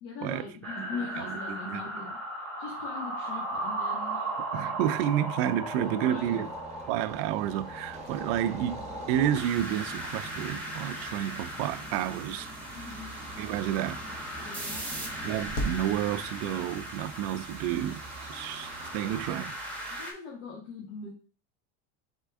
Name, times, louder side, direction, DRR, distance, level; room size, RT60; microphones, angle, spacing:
voice 1, 0.0-2.2 2.6-4.4 5.7-6.5 12.7-13.2 14.4-15.0 19.9-21.1, left 5 dB, 80° left, 1.4 m, -41 dB
sound 1, 0.6-20.1, right 1 dB, 5° left, 1.0 m, -37 dB
voice 2, 4.5-6.5 6.9-8.8 9.1-12.5 13.4-14.0 15.2-18.0 18.3-19.6, right 11 dB, 55° right, 0.4 m, -30 dB
sound 2, 5.6-20.0, right 3 dB, 20° right, 0.7 m, -48 dB
sound 3, 6.4-17.4, equal, 65° left, 1.4 m, -44 dB
4.2 x 3.6 x 3.5 m
cardioid pair, 155°, 31 cm